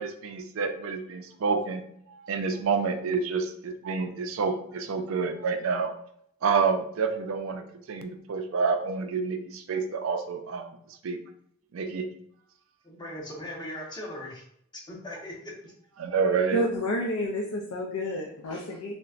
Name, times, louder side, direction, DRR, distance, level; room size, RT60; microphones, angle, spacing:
voice 1, 0.0-1.8 2.1-5.9 6.4-11.2 11.7-12.1 16.0-16.6, right 5 dB, 70° right, 7 dB, 0.4 m, -28 dB
voice 2, 12.8-14.4 14.7-15.7, left 1 dB, 20° left, -4 dB, 0.8 m, -39 dB
voice 3, 16.5-18.9, left 1 dB, 85° left, 1 dB, 0.4 m, -29 dB
3.9 x 2.1 x 2.4 m, 0.69 s
head